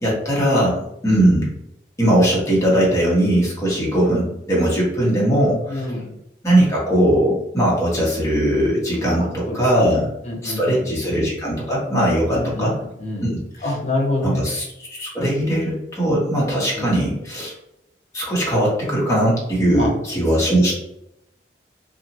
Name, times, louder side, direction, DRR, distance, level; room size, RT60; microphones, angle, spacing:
voice 1, 0.0-1.5 2.0-5.9 6.4-10.1 10.4-12.7 13.2-13.3 13.6-13.7 14.2-17.5 18.1-20.7, right 1 dB, 15° left, -6 dB, 0.9 m, -19 dB
voice 2, 5.7-6.1 9.1-10.0 10.3-11.1 12.3-12.7 13.0-13.3 13.6-14.4 16.8-17.1 19.7-19.9 20.5-20.6, left 1 dB, 40° left, -2 dB, 0.6 m, -26 dB
2.9 x 2.3 x 2.6 m, 0.83 s
head